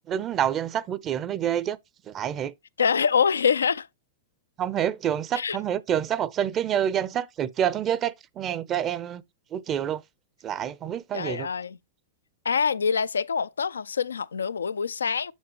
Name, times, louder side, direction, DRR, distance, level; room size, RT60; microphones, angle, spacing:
voice 1, 0.1-1.8 2.1-2.5 4.6-9.2 9.5-10.0 10.4-11.5, right 10 dB, 30° right, 0.6 m, -27 dB
voice 2, 2.8-3.9 5.3-5.6 11.1-11.8 12.4-15.3, left 6 dB, 85° left, 0.4 m, -25 dB
7.3 x 7.3 x 2.9 m
hypercardioid pair, 105°, 0 cm